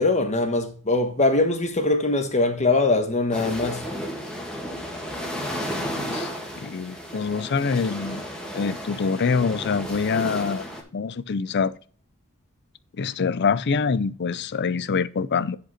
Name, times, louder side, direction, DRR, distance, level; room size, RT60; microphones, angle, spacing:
voice 1, 0.0-3.8, left 2 dB, 30° left, 1.4 m, -22 dB
sound 1, 3.3-10.8, equal, 5° left, 1.8 m, -33 dB
voice 2, 5.8-6.3 6.6-8.2 8.5-10.7 10.9-11.7 12.9-15.6, left 5 dB, 50° left, 0.5 m, -25 dB
10.5 x 5.2 x 4.3 m
head